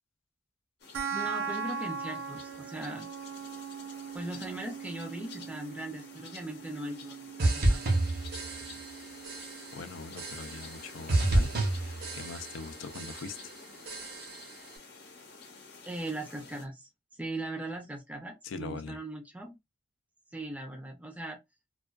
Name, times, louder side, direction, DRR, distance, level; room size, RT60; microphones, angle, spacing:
sound 1, 0.8-16.6, left 4 dB, 55° left, 0.8 m, -50 dB
sound 2, 0.9-11.9, right 6 dB, 80° right, 0.4 m, -41 dB
voice 1, 1.1-3.1 4.1-8.1 15.8-19.6 20.3-21.4, right 1 dB, 10° right, 0.5 m, -39 dB
sound 3, 7.4-9.0 9.2-9.8 10.2-10.8 11.1-12.7 12.9-13.5 13.9-14.5, right 2 dB, 50° right, 0.9 m, -30 dB
voice 2, 9.7-13.5 18.4-19.0, left 4 dB, 80° left, 0.4 m, -42 dB
2.3 x 2.3 x 2.3 m
head